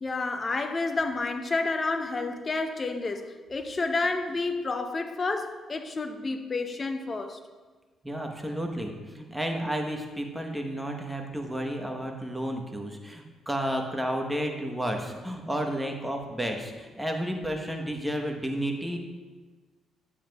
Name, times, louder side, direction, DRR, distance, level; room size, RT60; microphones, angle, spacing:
voice 1, 0.0-7.4, left 3 dB, 30° left, 0.6 m, -30 dB
voice 2, 8.0-19.0, equal, 5° right, 1.0 m, -32 dB
9.3 x 7.2 x 2.3 m
cardioid pair, 90°, 0 cm